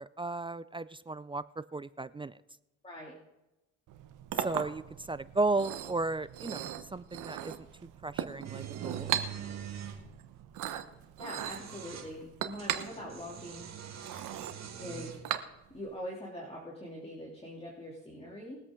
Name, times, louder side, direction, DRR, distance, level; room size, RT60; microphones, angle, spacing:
voice 1, 0.0-2.3 4.4-4.8 5.1-7.5 8.0-9.1, right 3 dB, 15° right, 16 dB, 0.4 m, -34 dB
voice 2, 2.8-3.1 11.2-13.7 14.8-15.1 15.7-18.6, equal, 20° left, -3 dB, 2.9 m, -43 dB
Chink clink, 3.9-15.9, right 10 dB, 85° right, 1.1 m, -39 dB
sound 1, 8.4-10.0 11.2-12.1 12.6-15.3, right 9 dB, 60° right, 2.1 m, -44 dB
21.5 x 8.1 x 3.7 m, 0.95 s
cardioid pair, 90°, 30 cm